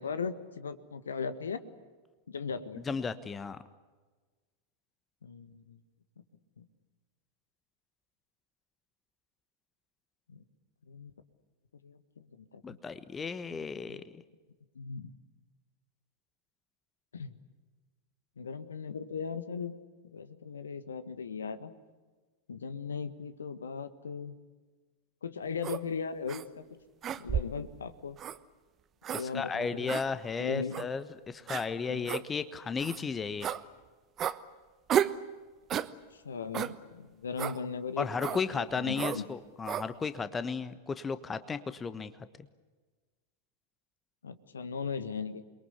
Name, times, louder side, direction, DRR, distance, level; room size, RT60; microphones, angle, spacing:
voice 1, 0.0-1.6 2.3-2.8 5.2-5.8 6.6-6.7 10.3-10.4 10.9-11.1 11.8-12.8 13.9-14.0 14.7-15.1 17.1-17.4 18.4-19.7 20.1-21.7 22.5-24.3 25.2-26.6 27.2-28.2 29.2-30.0 30.4-30.9 31.9-32.1 36.1-39.2 44.2-45.4, left 5 dB, 70° left, 12 dB, 1.6 m, -38 dB
voice 2, 2.9-3.6 12.6-14.2 29.1-33.5 38.0-42.1 42.4-42.5, left 5 dB, 15° left, 13 dB, 1.2 m, -34 dB
sound 1, 25.6-25.8 26.3-26.4 27.0-27.6 28.2-28.4 29.0-29.3 29.9-30.0 30.7-30.9 31.5-31.6 32.1-32.2 32.8-33.0 33.4-33.6 34.2-34.4 34.9-35.2 35.7-35.9 36.5-36.7 37.4-37.6 38.2-38.4 39.0-39.2 39.7-39.9, right 9 dB, 30° right, 1.0 m, -32 dB
28.5 x 22.5 x 8.2 m, 1.3 s
figure-of-eight pair, 90°, 0 cm